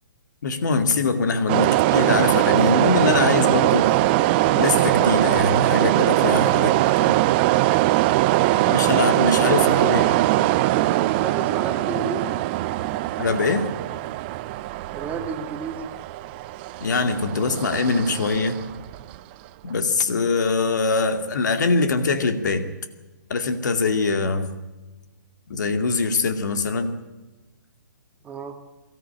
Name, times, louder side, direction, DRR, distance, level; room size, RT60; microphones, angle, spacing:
voice 1, 0.4-3.9 4.5-6.7 7.0-7.2 8.6-10.2 13.2-13.7 16.8-18.6 19.6-22.7 23.3-24.6 25.5-26.9, left 4 dB, 60° left, 8 dB, 2.3 m, -23 dB
sound 1, 1.5-19.1, right 17 dB, 30° right, 0.6 m, -21 dB
voice 2, 11.2-12.3 14.9-15.9 28.2-28.6, right 4 dB, 15° right, 5 dB, 1.9 m, -31 dB
23.0 x 14.0 x 8.9 m, 1.1 s
figure-of-eight pair, 130°, 11 cm